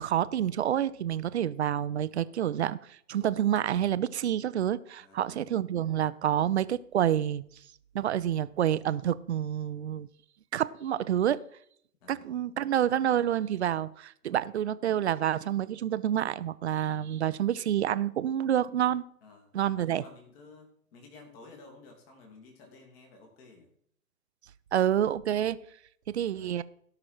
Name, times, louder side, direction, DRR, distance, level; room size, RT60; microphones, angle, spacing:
voice 1, 0.0-2.8 3.1-7.4 7.9-10.1 10.5-11.4 12.1-19.0 19.5-20.0 24.7-25.6 26.1-26.6, right 10 dB, 45° right, 0.5 m, -28 dB
voice 2, 5.0-5.5 12.0-12.3 14.3-14.5 19.2-23.7 26.3-26.6, left 3 dB, 35° left, 3.0 m, -53 dB
17.0 x 6.0 x 4.4 m
figure-of-eight pair, 115°, 47 cm